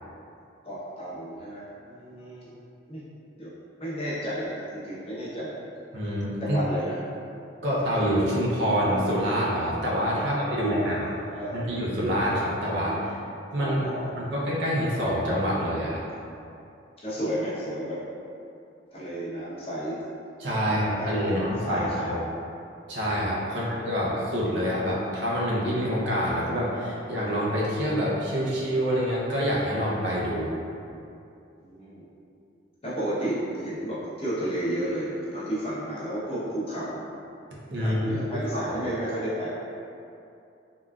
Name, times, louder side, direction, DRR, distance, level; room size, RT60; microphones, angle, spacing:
voice 1, 0.6-2.6 2.9-3.0 3.4-3.5 3.8-5.5 6.4-7.0 10.2-11.7 13.6-14.3 17.0-18.0 18.9-20.0 20.7-22.4 23.5-23.7 31.6-32.1 32.8-37.0 37.7-39.5, right 1 dB, 30° left, -10 dB, 0.8 m, -32 dB
voice 2, 5.9-6.6 7.6-11.1 11.5-13.2 13.5-16.0 20.4-22.2 22.9-30.5 37.7-38.7, equal, 70° right, -5 dB, 0.6 m, -26 dB
3.7 x 2.3 x 2.3 m, 2.6 s
head